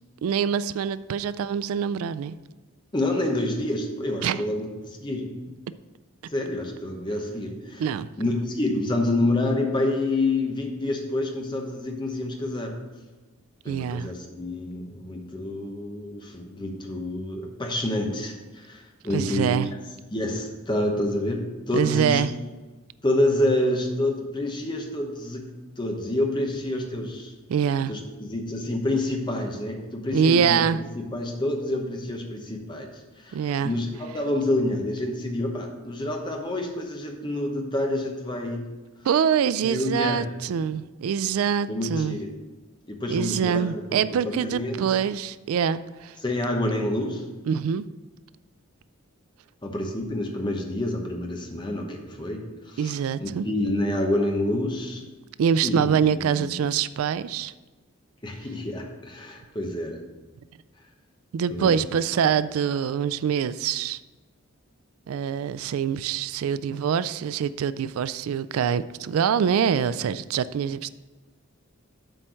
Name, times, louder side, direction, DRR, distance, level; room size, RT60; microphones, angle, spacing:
voice 1, 0.2-2.4 4.2-4.4 7.8-8.1 13.7-14.1 19.1-19.7 21.7-22.3 27.5-27.9 30.1-30.8 33.3-33.7 39.0-42.2 43.1-46.2 47.4-47.9 52.8-53.5 55.4-57.5 61.3-64.0 65.1-70.9, right 7 dB, 80° right, 15 dB, 0.3 m, -24 dB
voice 2, 2.9-5.3 6.3-7.9 8.2-12.8 13.6-19.6 20.1-21.4 21.7-22.2 23.0-25.5 25.8-27.3 27.9-30.6 30.9-32.9 33.2-38.6 39.6-40.3 41.7-42.3 42.9-44.8 46.2-47.2 49.6-53.0 53.2-55.0 55.6-56.6 58.2-60.0 61.5-61.7, left 1 dB, 20° left, 2 dB, 1.0 m, -28 dB
7.8 x 4.4 x 6.3 m, 1.2 s
head